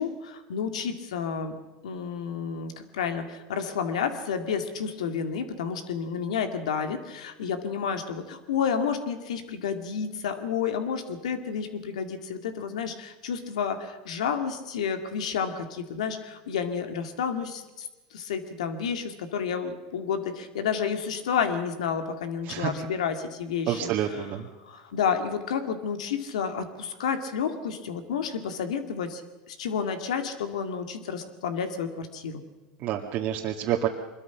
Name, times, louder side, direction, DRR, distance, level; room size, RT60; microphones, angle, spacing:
voice 1, 0.0-1.6 1.8-17.9 18.1-23.9 24.7-29.2 29.5-32.4, left 7 dB, 85° left, 8 dB, 2.1 m, -30 dB
voice 2, 22.4-22.9 23.7-24.5 32.8-33.9, right 11 dB, 55° right, -1 dB, 2.0 m, -28 dB
23.5 x 22.0 x 5.9 m, 1.1 s
hypercardioid pair, 100°, 4 cm